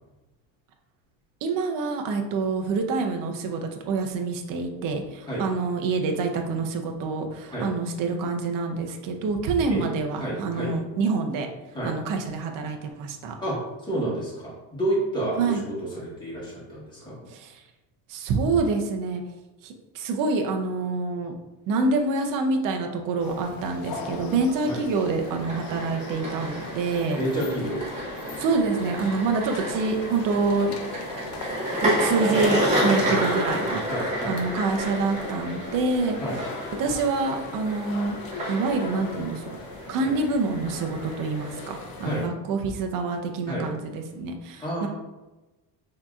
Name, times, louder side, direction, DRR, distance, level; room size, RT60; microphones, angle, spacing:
voice 1, 1.4-11.5 11.8-13.3 15.4-15.6 17.3-17.6 18.1-19.2 19.6-21.4 21.7-27.2 28.4-30.8 31.8-33.8 34.2-36.2 36.8-38.2 38.5-39.6 39.9-44.9, right 3 dB, 45° right, 4 dB, 0.6 m, -26 dB
voice 2, 10.2-10.7 11.7-11.9 13.4-17.1 24.6-24.8 27.2-27.8 33.0-33.2 33.9-34.4 36.2-36.4 40.0-40.1 42.0-42.2 43.5-43.7 44.6-44.9, right 1 dB, 10° left, -7 dB, 1.3 m, -29 dB
sound 1, 23.2-42.3, left 4 dB, 55° left, 0.6 m, -40 dB
sound 2, 25.2-42.1, equal, 15° right, 1.3 m, -31 dB
6.4 x 2.9 x 2.4 m, 1.1 s
cardioid pair, 170°, 44 cm